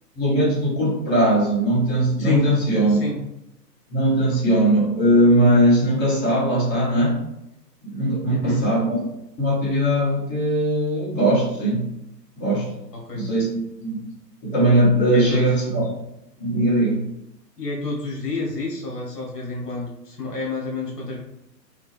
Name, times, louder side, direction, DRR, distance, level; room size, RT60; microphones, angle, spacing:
voice 1, 0.2-3.0 3.9-7.2 7.8-9.0 9.4-11.9 12.4-12.7 13.1-14.0 14.4-15.9 16.4-17.1, right 1 dB, 25° left, -6 dB, 1.3 m, -20 dB
voice 2, 2.2-2.5 2.9-3.2 8.3-8.7 12.9-13.3 15.1-15.4 17.6-21.2, left 3 dB, 70° left, -2 dB, 1.5 m, -29 dB
3.6 x 2.6 x 3.2 m, 0.85 s
figure-of-eight pair, 125°, 50 cm